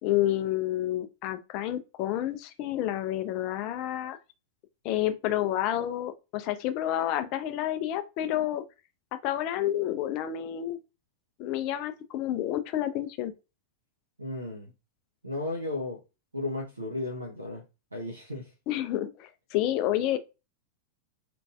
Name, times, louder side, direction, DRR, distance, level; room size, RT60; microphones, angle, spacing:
voice 1, 0.0-4.2 4.8-8.6 9.2-10.8 11.4-13.3 18.7-20.2, left 12 dB, 40° left, 0.4 m, -29 dB
voice 2, 14.2-14.7 15.2-16.0 16.3-17.6 17.9-18.5, left 2 dB, 80° right, 0.6 m, -34 dB
2.9 x 2.5 x 2.3 m
figure-of-eight pair, 90°, 0 cm